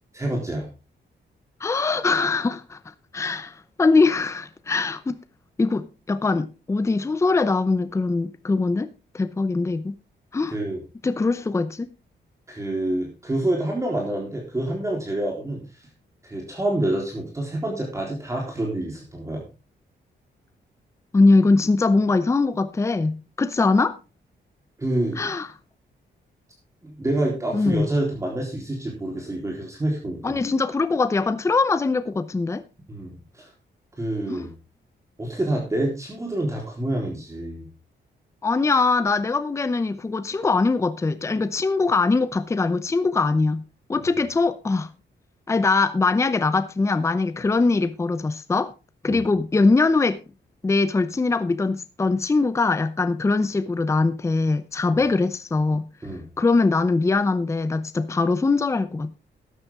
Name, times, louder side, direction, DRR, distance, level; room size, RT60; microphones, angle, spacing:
voice 1, 0.1-0.7 10.5-10.8 12.5-15.6 16.2-19.4 24.8-25.2 26.8-30.4 32.9-33.5 34.0-34.5 35.2-37.7 49.1-49.2 54.9-55.0 56.0-56.3, right 1 dB, 15° right, 3.7 m, -27 dB
voice 2, 1.6-2.8 3.1-5.2 5.6-8.9 9.1-10.0 10.3-10.6 11.0-11.9 21.1-24.0 25.2-25.5 27.5-27.9 30.2-32.6 34.3-34.5 38.4-43.6 43.9-44.9 45.5-48.7 49.0-50.2 50.6-55.9 56.4-59.1, left 3 dB, 15° left, 0.6 m, -22 dB
13.0 x 9.8 x 3.6 m
wide cardioid pair, 160°, 18 cm